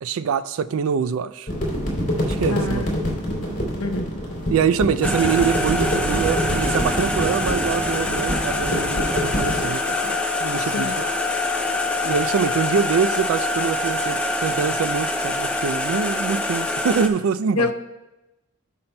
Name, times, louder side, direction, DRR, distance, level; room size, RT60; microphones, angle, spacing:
voice 1, 0.0-1.5 2.2-2.9 4.5-10.9 12.0-17.7, right 6 dB, 70° right, 15 dB, 0.3 m, -24 dB
sound 1, 1.5-9.6, equal, 35° left, 2.6 m, -26 dB
voice 2, 2.5-2.9 3.8-4.1 10.6-10.9 17.6-17.7, left 3 dB, 85° left, 4 dB, 0.8 m, -26 dB
sound 2, 5.0-17.1, left 2 dB, 5° left, 0.4 m, -25 dB
14.5 x 5.7 x 2.2 m, 0.98 s
head